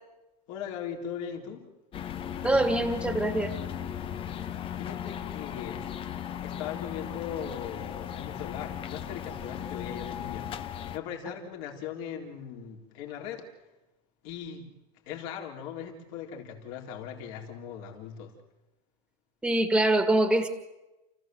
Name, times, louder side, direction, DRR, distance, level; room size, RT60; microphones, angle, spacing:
voice 1, 0.5-1.7 4.4-5.9 6.4-10.5 10.9-13.5 14.2-14.7 15.1-18.3, left 8 dB, 50° left, 1 dB, 4.0 m, -39 dB
sound 1, 1.9-11.0, left 9 dB, 25° left, 0.9 m, -37 dB
voice 2, 2.4-3.5 19.4-20.5, right 1 dB, 5° right, 8 dB, 1.9 m, -24 dB
30.0 x 15.0 x 7.8 m, 1.0 s
supercardioid pair, 140°, 21 cm